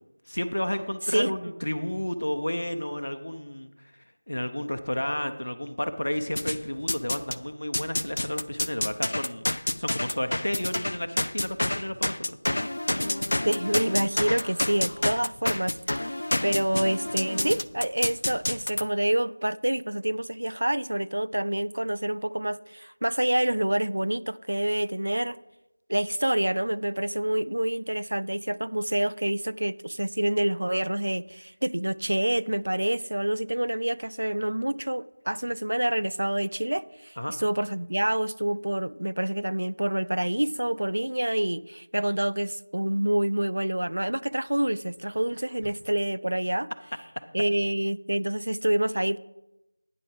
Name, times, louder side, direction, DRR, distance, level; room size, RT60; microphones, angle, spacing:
voice 1, 0.3-12.4 37.2-37.3 45.6-45.7, left 1 dB, 80° left, 0.8 m, -32 dB
sound 1, 6.3-7.4 7.7-18.8, left 1 dB, 60° left, 0.4 m, -29 dB
voice 2, 13.4-25.4 25.9-46.7 47.3-49.2, right 1 dB, 75° right, 0.4 m, -27 dB
9.7 x 7.6 x 4.8 m
figure-of-eight pair, 175°, 0 cm